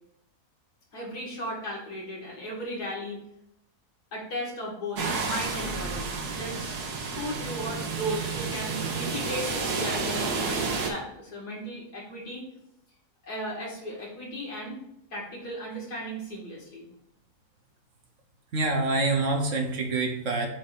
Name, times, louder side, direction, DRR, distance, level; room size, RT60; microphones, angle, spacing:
voice 1, 0.9-3.2 4.1-12.4 13.2-14.7 15.1-16.9, equal, 85° left, -4 dB, 2.6 m, -36 dB
sound 1, 5.0-10.9, right 4 dB, 80° right, 1.4 m, -30 dB
voice 2, 18.5-20.5, right 3 dB, 55° right, 2 dB, 1.2 m, -26 dB
7.6 x 2.6 x 5.2 m, 0.78 s
omnidirectional pair, 1.6 m